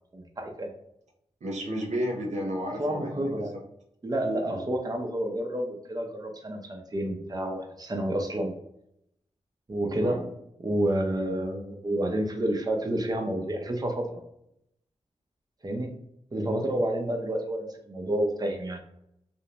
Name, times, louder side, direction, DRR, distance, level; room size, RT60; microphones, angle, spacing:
voice 1, 0.1-0.7 2.8-3.6 4.0-8.5 9.7-10.3 10.6-14.1 15.6-15.9 16.3-18.8, right 1 dB, 35° right, 3 dB, 0.6 m, -29 dB
voice 2, 1.4-3.3 9.8-10.2, equal, 85° right, 0 dB, 0.6 m, -32 dB
2.5 x 2.0 x 2.8 m, 0.77 s
cardioid pair, 60°, 12 cm